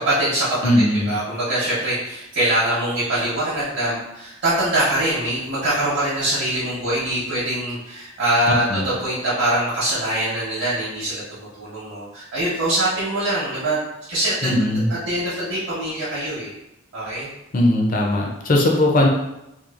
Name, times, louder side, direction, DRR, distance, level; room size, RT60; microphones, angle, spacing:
voice 1, 0.0-0.6 1.1-13.8 14.1-14.5 15.1-16.5 16.9-17.3, right 1 dB, 55° right, -10 dB, 0.9 m, -23 dB
voice 2, 0.6-1.2 8.7-8.9 14.4-14.9 17.5-19.1, left 1 dB, 40° left, 0 dB, 0.4 m, -19 dB
2.9 x 2.3 x 2.4 m, 0.89 s
head